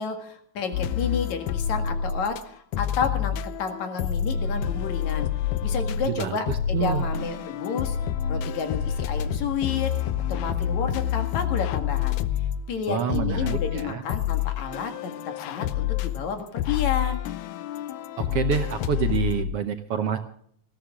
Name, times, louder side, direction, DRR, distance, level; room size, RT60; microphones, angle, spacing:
voice 1, 0.0-5.3 5.6-8.0 8.3-12.2 12.7-17.2, left 6 dB, 70° left, 6 dB, 3.1 m, -31 dB
sound 1, 0.7-2.4 2.7-19.4, left 9 dB, 90° left, 2.3 m, -28 dB
voice 2, 6.0-7.1 12.9-14.0 18.2-20.2, right 9 dB, 65° right, 7 dB, 1.6 m, -28 dB
20.0 x 14.5 x 3.6 m, 0.64 s
omnidirectional pair, 3.4 m